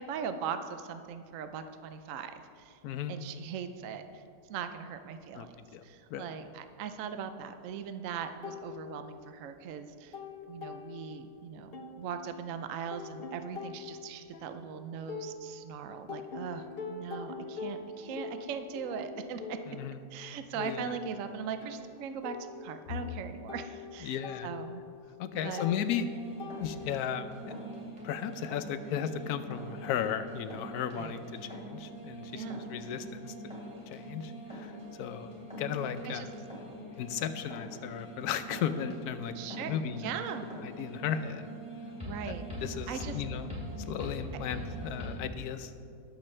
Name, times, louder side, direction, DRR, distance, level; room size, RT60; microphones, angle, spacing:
voice 1, 0.0-2.8 3.1-4.2 4.5-5.6 5.8-10.1 10.5-19.6 20.1-22.4 22.6-24.2 24.4-24.8 25.4-25.7 31.0-31.2 32.3-32.6 36.0-36.3 39.3-40.5 42.0-42.5 42.9-43.1, right 7 dB, 70° right, 9 dB, 0.8 m, -40 dB
voice 2, 2.8-3.1 5.3-5.8 6.1-6.3 19.7-20.0 20.6-20.9 24.0-24.5 25.2-26.0 26.6-27.5 28.0-31.2 31.5-33.3 33.9-34.7 35.0-35.3 35.6-36.3 37.0-40.2 40.6-41.5 42.3-42.4 42.6-43.5 43.9-45.7, left 8 dB, 70° left, 10 dB, 1.0 m, -35 dB
sound 1, 8.4-9.5 9.8-11.4 11.7-15.7 16.1-27.1, left 4 dB, 50° left, 0.7 m, -44 dB
sound 2, 26.0-45.2, right 1 dB, 5° right, 2.9 m, -43 dB
20.5 x 7.1 x 3.3 m, 2.4 s
omnidirectional pair, 1.9 m